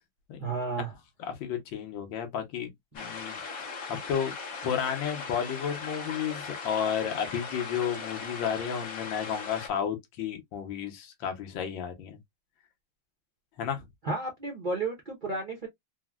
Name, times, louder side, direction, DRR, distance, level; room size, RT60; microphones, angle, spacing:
voice 1, 0.4-0.9 14.0-15.7, right 3 dB, 85° right, 0.4 m, -32 dB
voice 2, 1.2-3.3 4.1-4.3 4.6-12.2 13.6-13.8, left 8 dB, 75° left, 1.5 m, -32 dB
sound 1, 2.9-9.7, left 4 dB, 50° left, 1.2 m, -39 dB
4.1 x 2.1 x 2.2 m
omnidirectional pair, 2.2 m